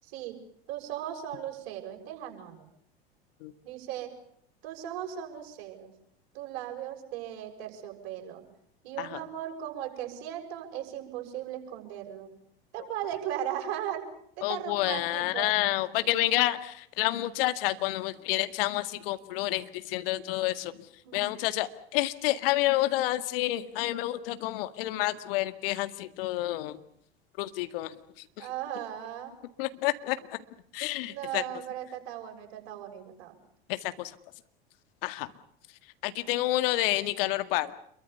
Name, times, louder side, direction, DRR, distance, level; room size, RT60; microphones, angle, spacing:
voice 1, 0.0-0.4 0.7-2.6 3.6-4.1 4.6-5.9 6.3-8.5 8.8-12.3 12.7-14.1 14.4-15.5 21.0-21.2 28.4-29.3 31.0-33.4, right 11 dB, 60° right, 4 dB, 7.1 m, -37 dB
voice 2, 14.4-26.8 27.4-28.5 29.6-30.4 30.7-31.4 33.7-34.2 35.0-35.3 36.0-37.7, left 16 dB, 60° left, 11 dB, 2.0 m, -29 dB
28.0 x 23.0 x 7.0 m, 0.67 s
hypercardioid pair, 80°, 31 cm